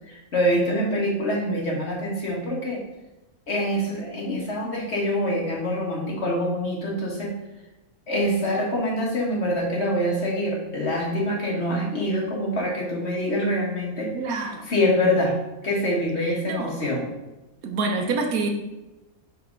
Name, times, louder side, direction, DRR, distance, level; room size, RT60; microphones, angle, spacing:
voice 1, 0.1-2.8 3.5-7.3 8.1-14.1 14.7-15.4 15.6-17.1, equal, 50° left, -2 dB, 1.7 m, -25 dB
voice 2, 14.1-14.7 16.2-16.8 17.6-18.5, right 3 dB, 85° right, 4 dB, 1.4 m, -27 dB
5.7 x 4.3 x 5.2 m, 1.0 s
omnidirectional pair, 1.5 m